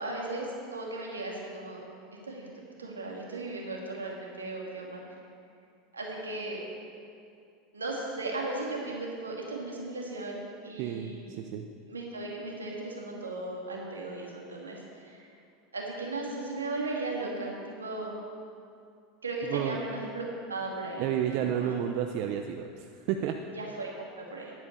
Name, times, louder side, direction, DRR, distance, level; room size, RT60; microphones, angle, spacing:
voice 1, 0.0-1.8 2.2-5.0 5.9-6.6 7.7-11.4 11.9-15.3 15.7-18.2 19.2-21.7 23.5-24.5, right 2 dB, 90° right, -2 dB, 2.2 m, -36 dB
voice 2, 10.8-11.6 19.5-19.8 21.0-23.4, right 9 dB, 55° right, 5 dB, 0.6 m, -31 dB
11.0 x 8.6 x 6.7 m, 2.4 s
hypercardioid pair, 80°, 0 cm